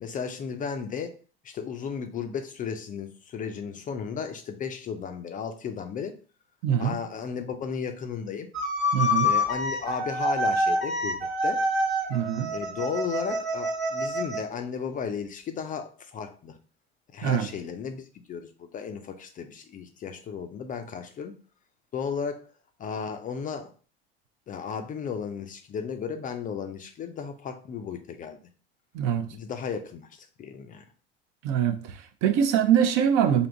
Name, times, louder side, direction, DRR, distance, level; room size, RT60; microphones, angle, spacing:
voice 1, 0.0-1.1 1.4-6.1 6.8-8.5 9.2-11.2 11.4-11.6 12.5-16.6 17.1-21.3 21.9-22.4 22.8-23.7 24.5-28.4 29.3-30.8, left 6 dB, 25° left, 0.4 m, -34 dB
voice 2, 6.6-7.0 8.9-9.3 12.1-12.5 17.2-17.5 28.9-29.3 31.4-33.5, right 9 dB, 55° right, 0.6 m, -23 dB
sound 1, 8.5-14.5, left 1 dB, 20° right, 1.3 m, -27 dB
3.4 x 2.7 x 2.5 m
hypercardioid pair, 85°, 32 cm